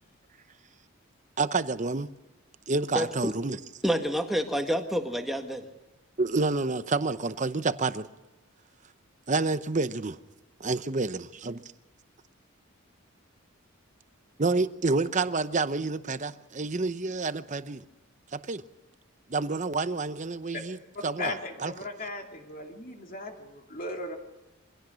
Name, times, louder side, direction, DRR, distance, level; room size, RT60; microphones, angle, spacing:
voice 1, 1.4-2.1 2.7-3.6 6.2-8.1 9.3-10.2 10.6-11.6 14.4-17.8 18.3-18.6 19.3-20.8 21.0-21.7, right 3 dB, 35° right, 12 dB, 0.8 m, -28 dB
voice 2, 2.9-3.3 3.8-5.7, equal, ahead, 3 dB, 1.7 m, -28 dB
voice 3, 21.2-24.2, left 2 dB, 40° left, 2 dB, 2.7 m, -37 dB
24.5 x 17.0 x 6.4 m, 1.1 s
head